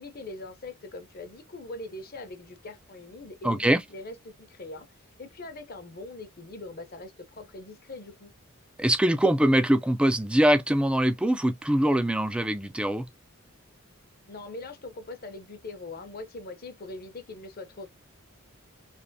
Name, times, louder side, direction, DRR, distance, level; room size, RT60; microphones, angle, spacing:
voice 1, 0.0-4.9 5.2-8.3 14.2-17.9, left 2 dB, 45° left, 0.7 m, -42 dB
voice 2, 3.4-3.8 8.8-13.1, right 1 dB, 5° right, 0.4 m, -23 dB
3.3 x 2.9 x 2.7 m
head